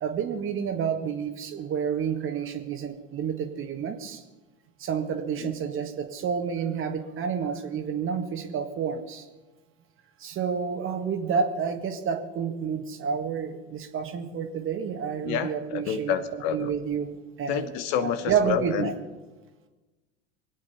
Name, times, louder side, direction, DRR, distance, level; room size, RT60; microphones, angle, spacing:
voice 1, 0.0-4.2 4.8-9.3 10.2-16.2 16.5-17.7 18.0-18.9, right 7 dB, 40° right, 6 dB, 1.7 m, -29 dB
voice 2, 15.2-16.7 17.5-18.9, left 8 dB, 55° left, 11 dB, 1.2 m, -29 dB
23.5 x 8.7 x 5.6 m, 1.2 s
hypercardioid pair, 75°, 32 cm